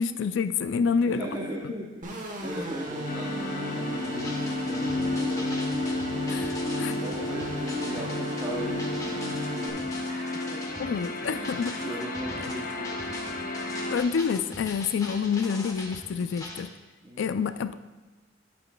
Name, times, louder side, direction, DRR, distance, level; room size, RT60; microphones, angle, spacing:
voice 1, 0.0-1.3 1.6-1.7 6.3-7.0 10.8-11.9 12.4-12.5 13.9-16.7 17.2-17.7, left 6 dB, 70° left, 13 dB, 0.4 m, -28 dB
voice 2, 1.0-5.5 6.6-10.8 11.2-13.5 16.1-16.3 17.0-17.3, right 1 dB, 20° right, -4 dB, 0.8 m, -39 dB
sound 1, 2.0-9.7, equal, 45° right, 1.1 m, -35 dB
sound 2, 3.0-14.0, left 2 dB, 45° left, 0.9 m, -32 dB
sound 3, 4.0-16.6, left 1 dB, 20° left, 1.0 m, -42 dB
9.9 x 8.7 x 2.3 m, 1.2 s
head